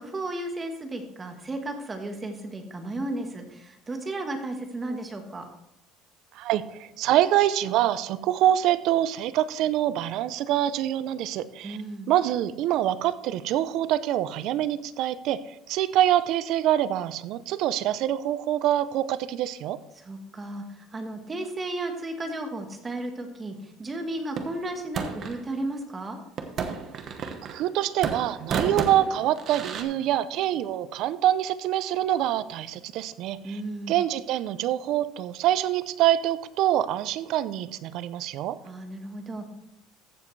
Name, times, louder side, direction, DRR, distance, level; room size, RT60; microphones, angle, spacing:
voice 1, 0.0-5.5 11.6-12.1 20.0-20.6 20.9-26.2 33.4-33.9 38.7-39.5, right 2 dB, 20° right, 5 dB, 1.3 m, -34 dB
voice 2, 6.4-11.8 12.1-19.8 27.2-33.6 33.9-38.6, right 12 dB, 60° right, 15 dB, 0.5 m, -25 dB
sound 1, 24.4-25.4 26.4-27.7 28.0-29.8, right 6 dB, 40° right, 1.1 m, -32 dB
14.5 x 7.4 x 3.2 m, 0.83 s
cardioid pair, 150°, 0 cm